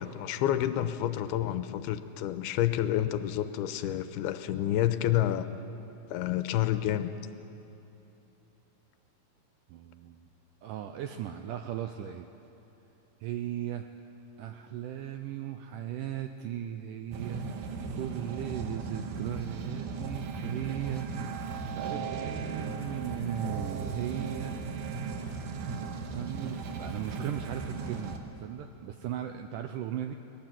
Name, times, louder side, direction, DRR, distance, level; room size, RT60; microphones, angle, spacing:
voice 1, 0.0-5.5 6.1-7.1, left 12 dB, 90° left, 10 dB, 2.7 m, -29 dB
voice 2, 9.7-10.3 10.6-12.3 13.2-13.9 14.4-17.5 17.9-21.1 21.4-24.6 26.1-30.2, right 11 dB, 85° right, 7 dB, 1.9 m, -37 dB
sound 1, 17.1-28.2, right 4 dB, 60° right, 2.6 m, -36 dB
22.0 x 19.0 x 7.5 m, 2.9 s
omnidirectional pair, 4.5 m